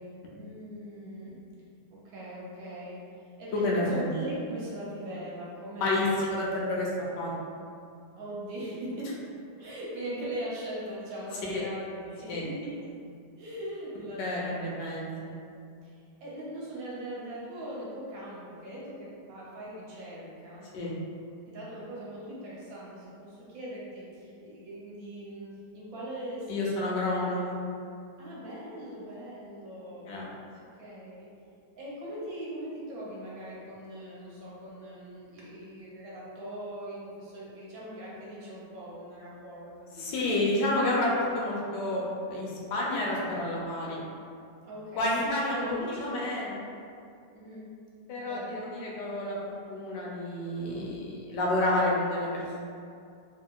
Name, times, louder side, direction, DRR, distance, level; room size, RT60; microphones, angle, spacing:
voice 1, 0.0-1.4 1.9-3.0 3.4-6.3 8.1-9.2 9.6-13.0 13.4-15.2 15.8-15.9 16.2-20.7 21.5-27.2 28.2-30.1 30.6-31.3 31.8-40.4 44.7-46.7 47.3-47.7 48.2-48.6, right 1 dB, 65° right, -6 dB, 1.0 m, -40 dB
voice 2, 3.6-4.1 5.8-6.9 7.2-7.3 11.5-11.6 12.3-12.4 14.2-15.1 20.7-20.9 26.5-27.5 30.1-30.3 40.0-42.0 42.3-44.0 45.0-46.6 48.1-52.3, left 1 dB, 90° left, -4 dB, 1.2 m, -29 dB
2.8 x 2.7 x 2.2 m, 2.4 s
omnidirectional pair, 1.8 m